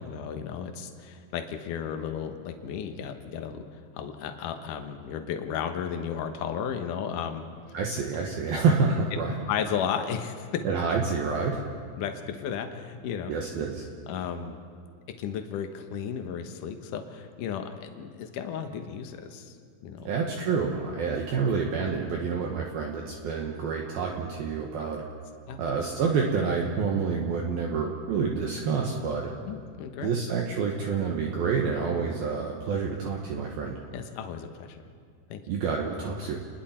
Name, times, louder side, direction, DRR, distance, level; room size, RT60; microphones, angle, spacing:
voice 1, 0.0-7.4 9.5-10.6 12.0-13.3 14.1-14.6 15.2-19.6 19.8-20.1 25.5-25.6 29.5-30.1 33.9-34.8 35.3-35.4, left 8 dB, 75° left, 6 dB, 1.9 m, -34 dB
voice 2, 7.7-9.3 10.6-11.6 13.3-13.9 20.0-25.0 25.6-29.3 30.0-33.8 35.5-36.4, right 5 dB, 65° right, 0 dB, 2.7 m, -28 dB
29.5 x 21.0 x 4.4 m, 2.1 s
omnidirectional pair, 5.4 m